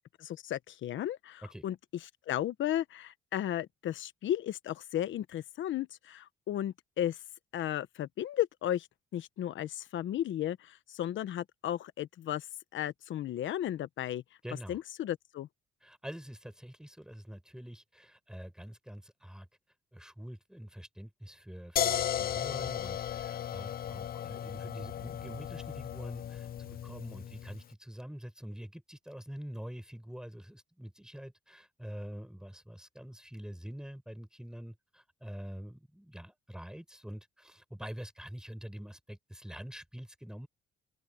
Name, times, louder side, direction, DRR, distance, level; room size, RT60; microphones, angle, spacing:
voice 1, 0.2-1.7 2.3-7.2 7.5-8.9 9.1-12.5 12.7-14.2 14.7-15.5, left 11 dB, 75° left, 1.2 m, -34 dB
voice 2, 14.4-14.8 15.8-19.5 19.9-40.5, equal, 5° right, 7.6 m, -45 dB
sound 1, 21.8-27.6, left 10 dB, 50° left, 0.5 m, -35 dB
open air
cardioid pair, 90°, 20 cm